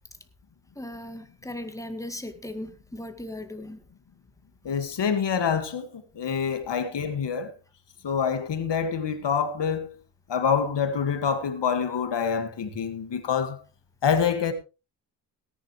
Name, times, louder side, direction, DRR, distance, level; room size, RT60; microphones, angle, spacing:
voice 1, 0.8-3.8 6.5-6.6, left 1 dB, 5° left, 1.9 m, -38 dB
voice 2, 4.6-7.5 8.0-9.9 10.3-13.6 14.0-14.5, left 6 dB, 65° left, 2.0 m, -26 dB
18.0 x 11.0 x 3.2 m
cardioid pair, 90°, 46 cm